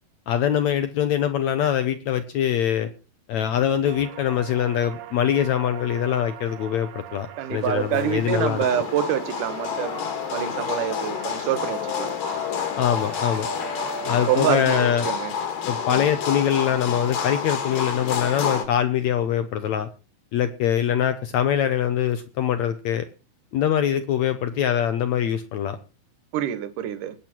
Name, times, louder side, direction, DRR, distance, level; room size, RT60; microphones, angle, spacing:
voice 1, 0.3-2.9 3.3-8.7 12.8-13.5 14.1-15.1 15.6-19.9 20.3-23.1 23.5-25.8, left 9 dB, 80° left, 1.6 m, -23 dB
sound 1, 3.8-15.2, right 12 dB, 85° right, 3.1 m, -40 dB
voice 2, 7.4-10.0 10.3-12.1 14.3-15.3 26.3-27.1, right 10 dB, 65° right, 2.6 m, -26 dB
sound 2, 7.6-18.7, left 7 dB, 65° left, 3.3 m, -29 dB
21.0 x 8.9 x 4.5 m
omnidirectional pair, 4.4 m